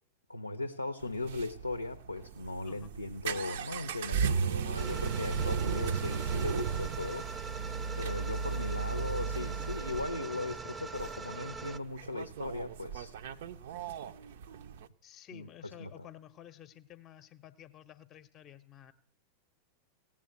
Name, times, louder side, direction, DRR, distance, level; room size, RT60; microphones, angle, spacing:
voice 1, 0.3-7.3 8.0-13.2 15.3-15.5 15.8-15.9, left 2 dB, 85° left, 0.6 m, -38 dB
sound 1, 1.0-14.9, right 6 dB, 55° right, 0.5 m, -35 dB
sound 2, 4.8-11.8, right 4 dB, 15° right, 0.6 m, -43 dB
voice 2, 15.0-18.9, left 11 dB, 30° left, 0.7 m, -52 dB
17.0 x 7.4 x 7.7 m
figure-of-eight pair, 90°, 0 cm